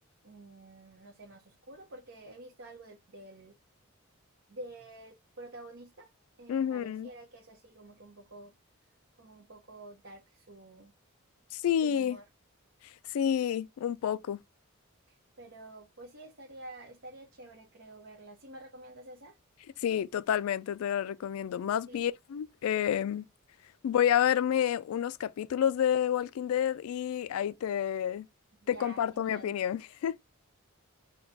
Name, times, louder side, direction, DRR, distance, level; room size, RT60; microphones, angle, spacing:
voice 1, 0.2-3.5 4.5-6.1 6.4-8.5 9.2-10.9 11.8-12.2 15.1-19.3 21.9-22.0 28.6-29.5, right 1 dB, 60° right, 0.9 m, -49 dB
voice 2, 6.5-7.1 11.5-12.2 13.1-14.4 19.8-23.2 23.8-28.3 28.7-30.2, left 9 dB, 80° left, 0.3 m, -29 dB
4.4 x 2.3 x 3.9 m
head